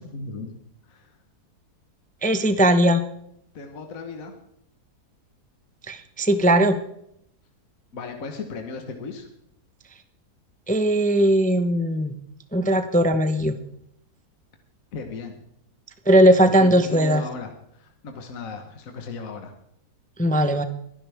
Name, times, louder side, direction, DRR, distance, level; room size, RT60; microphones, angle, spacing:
voice 1, 0.1-0.5 0.9-1.2 3.5-4.3 7.9-9.3 14.9-15.4 16.6-19.5, left 4 dB, 55° left, 4 dB, 1.7 m, -36 dB
voice 2, 2.2-3.0 5.9-6.8 10.7-12.1 12.5-13.6 16.1-17.2 20.2-20.6, right 1 dB, 10° left, 9 dB, 0.3 m, -19 dB
22.0 x 11.0 x 3.5 m, 0.74 s
omnidirectional pair, 1.7 m